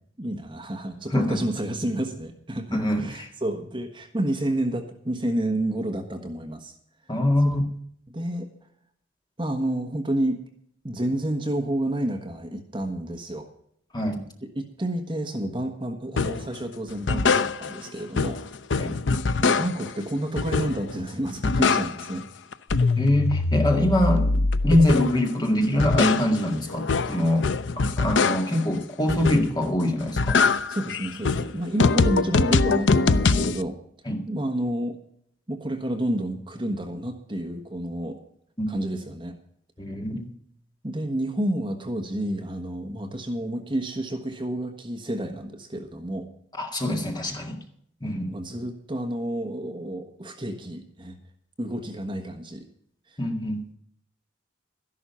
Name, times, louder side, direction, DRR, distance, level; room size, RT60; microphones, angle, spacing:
voice 1, 0.2-6.7 7.4-7.6 8.1-8.5 9.4-10.4 10.8-13.5 14.5-18.4 19.4-22.3 30.7-33.8 34.3-35.0 35.5-38.2 38.7-39.3 40.1-40.2 40.8-46.3 48.1-51.2 51.6-52.6 53.1-53.2, right 1 dB, 25° right, 5 dB, 1.3 m, -30 dB
voice 2, 1.1-1.4 2.7-3.3 7.1-7.7 13.9-14.2 18.8-18.9 23.0-30.4 34.1-34.3 38.6-38.8 39.8-40.3 46.6-47.6 48.0-48.3 53.2-53.7, left 1 dB, 20° left, 3 dB, 1.9 m, -24 dB
sound 1, 16.2-16.5 16.9-17.9 18.2-20.0 20.4-21.0 21.3-22.2 22.5-25.3 25.6-28.7 29.1-29.7 30.0-33.6, left 4 dB, 70° left, 0.6 m, -23 dB
13.0 x 11.0 x 5.7 m, 0.67 s
head